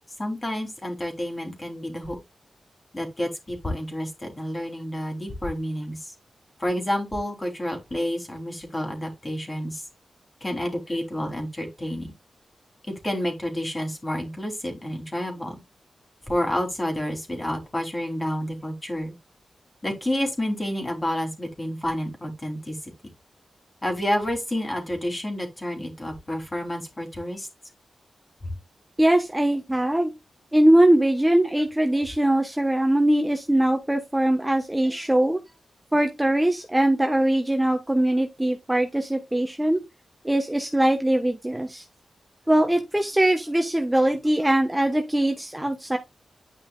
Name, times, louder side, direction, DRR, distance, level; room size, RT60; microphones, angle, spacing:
voice 1, 0.2-2.2 2.9-6.1 6.6-9.8 10.4-12.1 13.0-15.6 16.3-19.1 19.8-22.8 23.8-27.5 28.4-28.5, left 1 dB, 25° left, 3.3 m, -29 dB
voice 2, 29.0-30.1 30.5-35.4 35.9-39.8 40.2-41.8 42.5-46.0, right 1 dB, 10° right, 1.2 m, -21 dB
10.5 x 5.5 x 2.4 m
cardioid pair, 75°, 0 cm